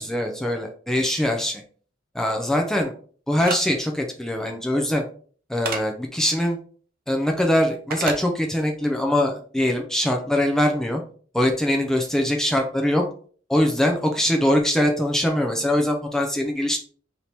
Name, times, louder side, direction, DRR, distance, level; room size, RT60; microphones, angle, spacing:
voice 1, 0.0-1.6 2.1-2.9 3.3-5.0 5.5-6.6 7.1-11.0 11.3-13.0 13.5-16.8, left 1 dB, 5° left, 1 dB, 0.5 m, -22 dB
sound 1, 3.4-3.6 5.6-5.8 7.9-8.2, right 4 dB, 50° right, 0.7 m, -28 dB
3.4 x 2.9 x 4.2 m, 0.43 s
head